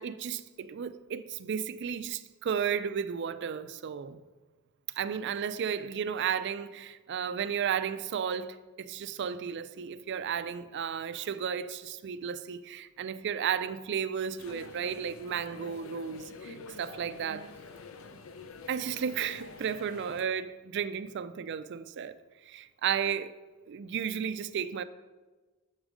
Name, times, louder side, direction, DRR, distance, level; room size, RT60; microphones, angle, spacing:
voice 1, 0.0-4.2 5.0-17.5 18.7-22.2 22.5-23.3 23.7-24.8, right 7 dB, 55° right, 0.4 m, -33 dB
sound 1, 14.4-20.2, left 4 dB, 65° left, 0.6 m, -47 dB
7.2 x 5.0 x 6.2 m
head